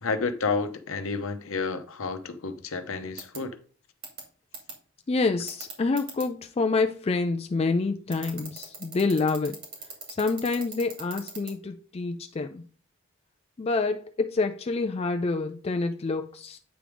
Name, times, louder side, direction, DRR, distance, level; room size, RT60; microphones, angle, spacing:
voice 1, 0.0-3.6, left 4 dB, 65° left, 0.8 m, -30 dB
sound 1, 3.2-3.4 4.0-4.2 4.5-4.7 5.5-6.2 8.1-11.5, right 4 dB, 60° right, 2.8 m, -38 dB
voice 2, 5.1-9.6 10.1-12.6 13.6-16.6, left 3 dB, 25° left, 0.3 m, -27 dB
8.9 x 3.5 x 4.8 m
head